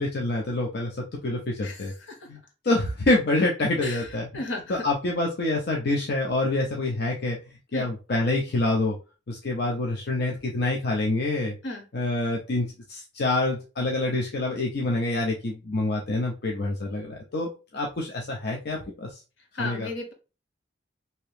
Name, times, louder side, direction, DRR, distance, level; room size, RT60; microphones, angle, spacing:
voice 1, 0.0-1.9 2.3-2.4 2.6-4.4 4.7-7.4 7.7-9.0 9.3-11.6 11.9-19.2 19.6-19.9, left 2 dB, 60° left, -1 dB, 0.6 m, -26 dB
voice 2, 1.6-2.2 3.8-4.8 7.7-7.9 11.6-11.8 19.5-20.1, left 2 dB, 75° left, 2 dB, 1.0 m, -34 dB
2.9 x 2.8 x 3.2 m, 0.31 s
head